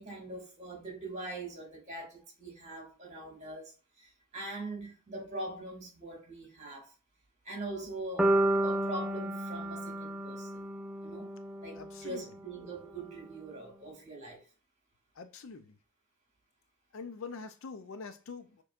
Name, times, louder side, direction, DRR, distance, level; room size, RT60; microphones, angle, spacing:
voice 1, 0.0-6.9 7.4-8.3 8.6-10.7 11.0-11.3 11.6-14.5, right 2 dB, 30° right, 2.1 m, -42 dB
sound 1, 8.2-12.3, right 1 dB, ahead, 0.3 m, -31 dB
voice 2, 11.8-12.2 15.2-15.8 16.9-18.6, left 4 dB, 60° left, 0.5 m, -44 dB
6.4 x 3.1 x 2.4 m
head